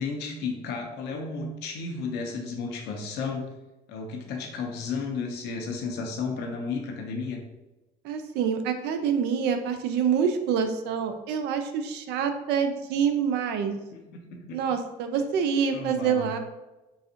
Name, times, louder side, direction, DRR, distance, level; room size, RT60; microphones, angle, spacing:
voice 1, 0.0-3.5 3.9-7.4 13.9-14.6 15.7-16.3, left 4 dB, 85° left, 2 dB, 0.7 m, -33 dB
voice 2, 8.0-13.8 14.5-16.4, right 7 dB, 80° right, 7 dB, 0.4 m, -26 dB
3.9 x 2.5 x 2.7 m, 1.0 s
cardioid pair, 110°, 17 cm